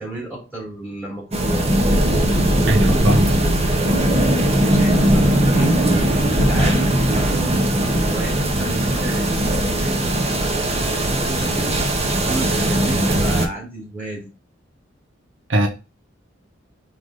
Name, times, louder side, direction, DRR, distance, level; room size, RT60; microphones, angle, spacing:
voice 1, 0.0-1.7 2.5-7.6 7.9-10.6 11.2-12.0 12.2-14.3, right 2 dB, 10° right, 3.2 m, -32 dB
sound 1, 1.3-13.5, right 1 dB, 35° right, 1.1 m, -19 dB
voice 2, 2.7-3.3 15.5-15.7, right 1 dB, 75° right, 0.9 m, -19 dB
4.7 x 4.0 x 5.0 m
head